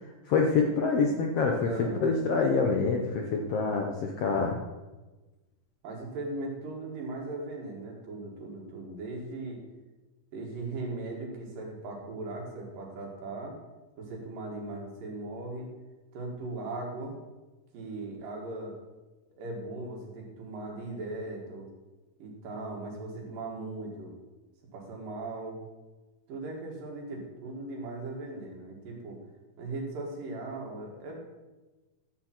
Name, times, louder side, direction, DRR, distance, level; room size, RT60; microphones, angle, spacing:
voice 1, 0.3-4.6, left 4 dB, 70° left, 1 dB, 1.5 m, -26 dB
voice 2, 1.6-2.1 5.8-9.6 10.3-13.6 14.0-15.7 16.1-17.2 17.7-18.8 19.4-21.7 22.2-24.1 24.7-25.6 26.3-29.2 29.6-31.2, right 2 dB, 85° right, -1 dB, 3.8 m, -38 dB
13.0 x 7.5 x 4.4 m, 1.2 s
omnidirectional pair, 3.8 m